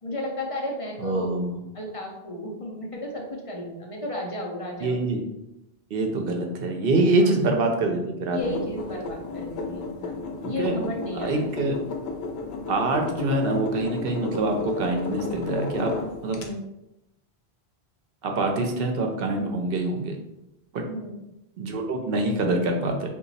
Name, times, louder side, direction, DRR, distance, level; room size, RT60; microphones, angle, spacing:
voice 1, 0.0-1.4 1.7-5.0 7.0-7.3 8.3-11.5 16.2-16.6 20.8-21.1, left 1 dB, 40° left, -1 dB, 0.5 m, -33 dB
voice 2, 1.0-1.6 4.8-5.2 5.9-8.5 10.4-10.8 11.1-11.8 12.7-15.9 16.2-16.4 18.2-20.2 20.7-20.8 21.6-23.1, right 2 dB, 70° right, 3 dB, 0.7 m, -25 dB
sound 1, 8.4-16.5, left 3 dB, 75° left, 0.8 m, -33 dB
2.9 x 2.3 x 3.9 m, 0.90 s
omnidirectional pair, 1.1 m